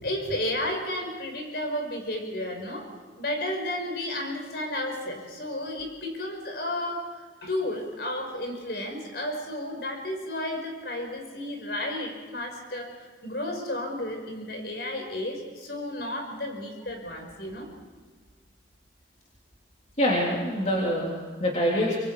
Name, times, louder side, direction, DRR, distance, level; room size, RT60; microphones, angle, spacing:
voice 1, 0.0-2.9 3.2-7.0 7.4-12.9 13.2-17.7, left 1 dB, 60° left, 3 dB, 5.4 m, -32 dB
voice 2, 20.0-22.0, equal, 35° left, -4 dB, 3.5 m, -25 dB
25.0 x 23.0 x 4.9 m, 1.5 s
head